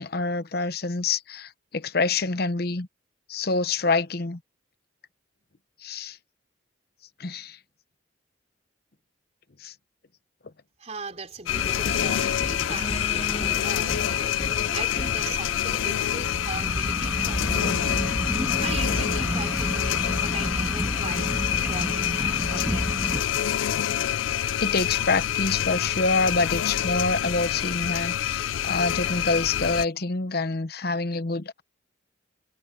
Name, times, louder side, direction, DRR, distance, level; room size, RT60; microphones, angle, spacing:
voice 1, 0.0-2.9 3.3-4.4 5.8-6.2 7.2-7.6 9.6-9.7 24.6-31.6, left 3 dB, 55° left, 0.9 m, -26 dB
voice 2, 10.8-22.9, right 3 dB, 35° right, 4.0 m, -40 dB
sound 1, 11.5-29.8, left 10 dB, 85° left, 0.4 m, -27 dB
sound 2, 11.5-16.4, left 2 dB, 30° left, 1.0 m, -35 dB
sound 3, 16.0-23.2, equal, 10° right, 1.4 m, -30 dB
head